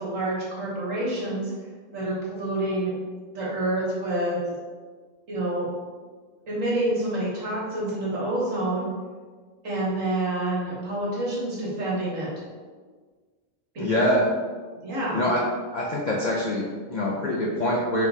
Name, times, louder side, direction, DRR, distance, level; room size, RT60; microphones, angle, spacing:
voice 1, 0.0-1.5 1.9-2.9 3.3-4.4 5.3-5.7 6.5-8.9 9.6-12.3 13.7-13.8 14.8-15.3, right 1 dB, 75° right, -6 dB, 1.6 m, -27 dB
voice 2, 13.8-14.2 15.1-15.4 15.7-18.1, left 1 dB, 65° left, -4 dB, 0.4 m, -24 dB
4.3 x 2.3 x 4.0 m, 1.5 s
omnidirectional pair, 1.4 m